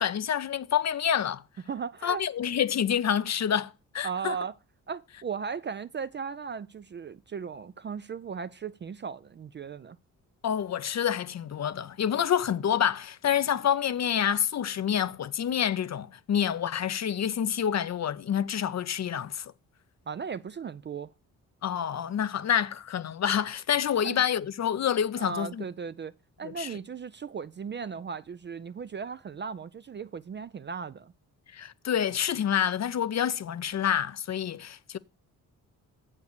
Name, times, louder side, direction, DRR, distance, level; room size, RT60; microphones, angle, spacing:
voice 1, 0.0-1.4 2.0-4.4 10.4-19.5 21.6-25.6 26.4-26.7 31.5-35.0, left 9 dB, 45° left, 0.6 m, -28 dB
voice 2, 1.7-2.2 4.0-4.5 4.9-10.0 20.1-21.1 24.0-24.2 25.2-26.1 26.4-31.1, right 6 dB, 30° right, 0.4 m, -36 dB
8.0 x 5.4 x 6.6 m
supercardioid pair, 50°, 39 cm